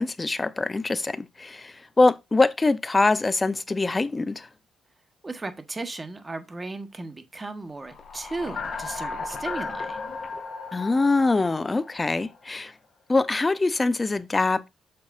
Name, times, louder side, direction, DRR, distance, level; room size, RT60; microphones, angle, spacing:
voice 1, 0.0-4.5 10.7-12.7 13.1-14.7, left 3 dB, 20° left, 0.7 m, -23 dB
voice 2, 5.2-10.0, right 3 dB, 20° right, 1.4 m, -35 dB
sound 1, 7.8-12.4, left 4 dB, 45° left, 2.3 m, -35 dB
8.4 x 6.3 x 2.6 m
cardioid pair, 90°, 0 cm